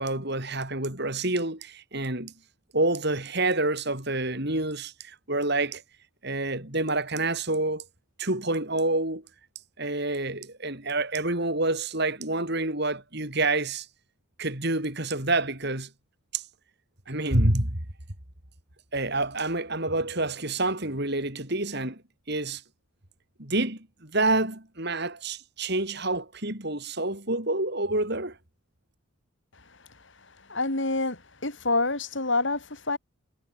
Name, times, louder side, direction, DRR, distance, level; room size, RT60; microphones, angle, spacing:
voice 1, 0.0-2.3 2.7-5.8 6.2-7.8 8.2-9.2 9.8-13.9 14.4-15.9 16.3-16.4 17.1-17.8 18.9-22.0 22.3-22.6 23.4-28.4, right 2 dB, 50° right, 4.8 m, -28 dB
voice 2, 30.5-33.0, left 3 dB, 55° left, 2.8 m, -27 dB
head